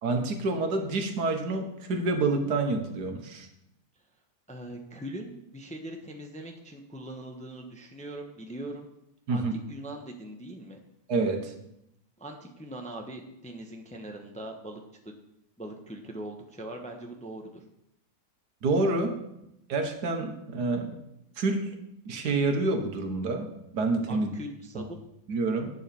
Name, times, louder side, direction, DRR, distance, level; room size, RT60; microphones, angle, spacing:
voice 1, 0.0-3.5 9.3-9.5 11.1-11.5 18.6-19.2 19.7-21.0 21.4-21.7 22.0-24.3 24.7-24.8 25.3-25.7, right 3 dB, 75° right, 5 dB, 1.8 m, -28 dB
voice 2, 4.5-8.9 9.3-10.8 12.2-15.1 15.6-17.6 24.1-25.0, right 1 dB, 5° left, 3 dB, 0.8 m, -41 dB
9.1 x 7.4 x 6.9 m, 0.81 s
omnidirectional pair, 1.8 m